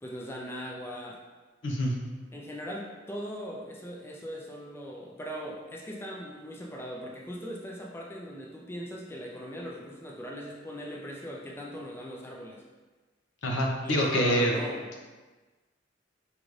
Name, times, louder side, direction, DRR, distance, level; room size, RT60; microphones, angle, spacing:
voice 1, 0.0-1.2 2.3-12.6 13.8-14.8, equal, 15° left, -2 dB, 0.4 m, -39 dB
voice 2, 1.6-1.9 13.4-14.5, equal, 90° left, -1 dB, 0.7 m, -26 dB
5.0 x 2.5 x 3.1 m, 1.3 s
head